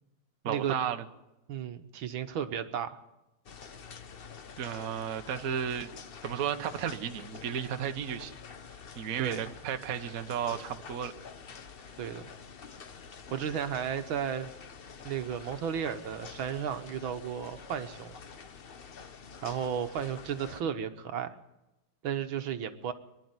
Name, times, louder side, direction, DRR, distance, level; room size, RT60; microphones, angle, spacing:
voice 1, 0.4-1.0 4.6-5.9 6.2-8.3 8.9-11.1, right 8 dB, 50° right, 7 dB, 1.3 m, -33 dB
voice 2, 1.5-3.0 9.2-9.5 12.0-12.3 13.3-14.5 15.1-18.2 19.4-21.4 22.0-22.9, right 8 dB, 75° right, 8 dB, 1.9 m, -34 dB
sound 1, 3.4-20.6, left 6 dB, 60° left, 0.6 m, -48 dB
24.5 x 11.0 x 9.6 m, 0.98 s
omnidirectional pair, 2.3 m